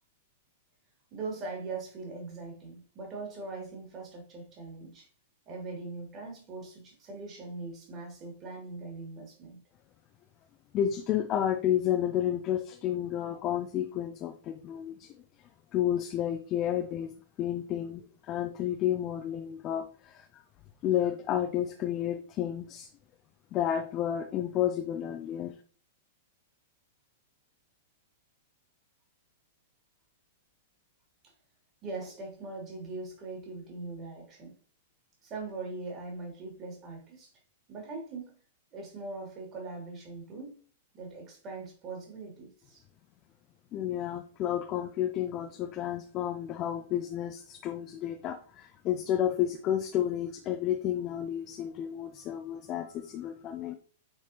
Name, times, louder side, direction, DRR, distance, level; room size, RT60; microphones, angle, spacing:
voice 1, 1.1-5.1 5.5-9.6 31.2-31.3 31.8-34.5 35.2-37.3 37.7-38.4 38.7-40.6 40.9-42.8, right 3 dB, 30° right, 3.0 m, -41 dB
voice 2, 10.7-15.1 15.7-17.1 17.4-20.4 20.8-22.9 23.5-25.6 43.7-53.7, left 11 dB, 35° left, 0.6 m, -31 dB
8.7 x 4.5 x 3.1 m
figure-of-eight pair, 100°, 0 cm